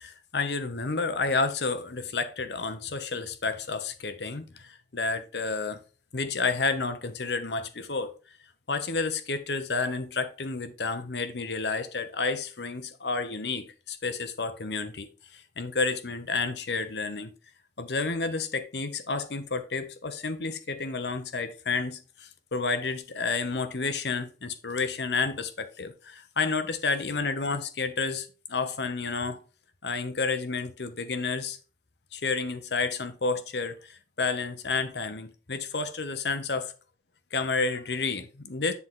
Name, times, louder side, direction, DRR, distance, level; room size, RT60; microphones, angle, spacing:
voice 1, 0.0-5.8 6.1-8.1 8.7-15.1 15.3-17.3 17.8-29.4 29.8-31.6 32.1-36.7 37.3-38.7, left 4 dB, 70° left, 1.0 m, -30 dB
9.6 x 4.1 x 3.7 m
head